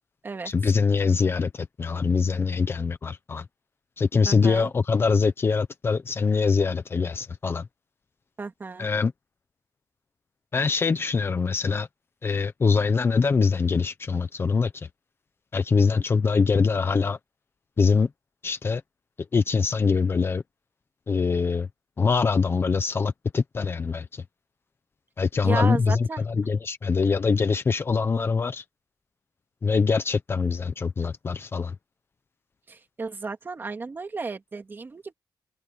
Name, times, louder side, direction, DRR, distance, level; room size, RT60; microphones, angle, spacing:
voice 1, 0.4-3.5 4.0-7.7 8.8-9.1 10.5-11.9 12.2-14.9 15.5-17.2 17.8-18.1 18.4-18.8 19.3-20.4 21.1-21.7 22.0-24.2 25.2-28.6 29.6-31.7, left 5 dB, 30° left, 0.9 m, -23 dB
voice 2, 4.2-4.7 8.4-8.9 25.4-26.2 32.7-35.1, right 4 dB, 30° right, 3.1 m, -33 dB
wide cardioid pair, 160°, 8 cm